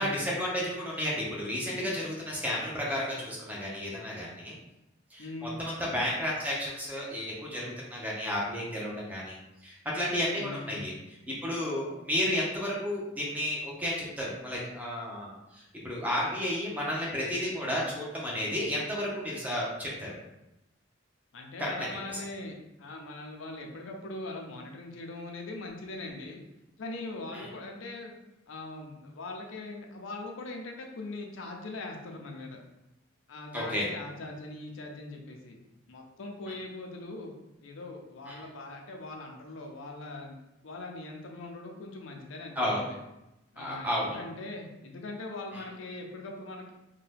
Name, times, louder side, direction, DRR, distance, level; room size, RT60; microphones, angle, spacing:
voice 1, 0.0-4.6 5.1-9.4 9.6-10.9 11.3-20.1 21.6-21.7 27.3-27.4 33.5-33.8 38.3-38.4 42.6-42.8 43.6-44.1 45.5-45.6, equal, 10° right, -4 dB, 0.7 m, -32 dB
voice 2, 5.2-5.6 10.3-10.8 21.3-22.5 22.8-26.4 26.8-28.1 28.5-32.6 33.3-35.6 35.9-37.3 37.6-40.4 40.6-43.0 43.5-46.7, left 2 dB, 85° left, 1 dB, 0.5 m, -41 dB
2.7 x 2.2 x 3.3 m, 0.93 s
head